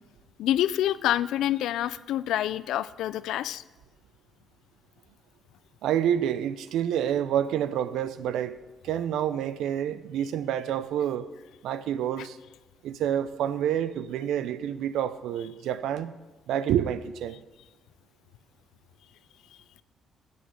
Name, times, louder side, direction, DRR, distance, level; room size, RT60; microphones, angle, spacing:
voice 1, 0.4-3.6 12.2-12.3, left 12 dB, 85° left, 17 dB, 0.3 m, -27 dB
voice 2, 5.8-8.6 8.8-11.3 11.6-12.4 12.8-16.1 16.5-17.4, right 10 dB, 85° right, 14 dB, 0.5 m, -28 dB
7.9 x 6.3 x 8.0 m, 1.2 s
cardioid pair, 90°, 0 cm